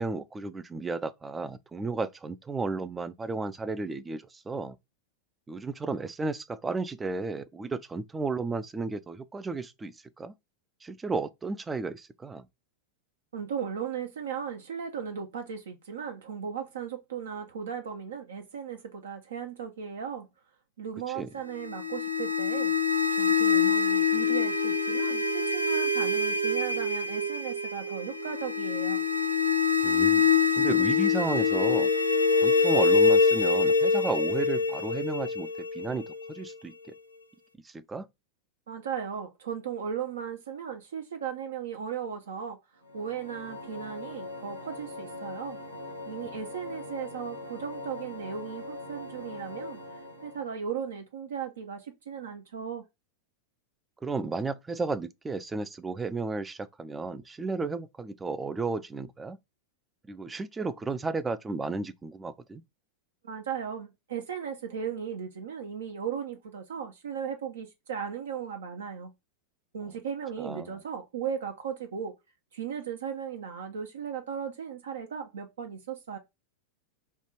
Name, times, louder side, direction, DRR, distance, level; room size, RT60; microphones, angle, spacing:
voice 1, 0.0-4.8 5.5-10.3 10.8-12.5 21.1-21.3 29.8-30.3 30.6-31.9 32.4-35.5 35.7-36.7 37.6-38.1 46.2-46.4 54.0-59.4 60.1-62.6 70.4-70.8, right 3 dB, 15° right, 0.4 m, -33 dB
voice 2, 13.3-20.3 20.8-22.7 23.1-29.0 38.7-42.6 42.9-45.6 46.1-52.8 63.2-69.1 69.7-72.2 72.5-76.2, right 7 dB, 65° right, 0.5 m, -36 dB
sound 1, 21.6-36.5, left 4 dB, 90° left, 0.5 m, -25 dB
sound 2, 42.8-50.6, left 2 dB, 85° right, 1.0 m, -42 dB
3.3 x 2.4 x 4.4 m
figure-of-eight pair, 90°, 0 cm